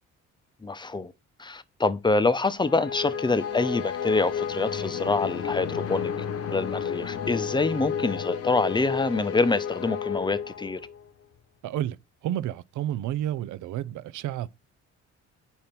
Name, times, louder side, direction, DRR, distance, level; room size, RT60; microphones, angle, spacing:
voice 1, 0.6-1.1 1.4-6.1 6.5-10.8, left 3 dB, 15° left, 0.7 m, -26 dB
sound 1, 2.6-11.0, left 8 dB, 55° left, 1.0 m, -32 dB
voice 2, 11.6-12.0 12.2-14.5, right 12 dB, 80° right, 0.6 m, -30 dB
5.3 x 4.3 x 5.8 m
cardioid pair, 90°, 30 cm